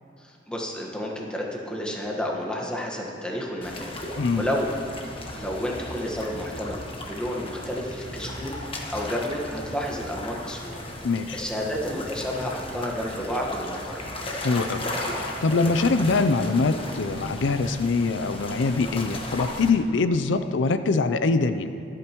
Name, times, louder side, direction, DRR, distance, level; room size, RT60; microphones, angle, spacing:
voice 1, 0.2-4.0 4.4-4.7 5.3-8.6 8.9-10.8 11.3-14.1, equal, 5° left, -1 dB, 1.4 m, -31 dB
sound 1, 3.6-19.7, left 1 dB, 30° left, 1.3 m, -36 dB
voice 2, 11.0-11.4 14.4-21.7, left 3 dB, 85° left, 10 dB, 0.5 m, -23 dB
24.0 x 8.8 x 3.0 m, 2.6 s
head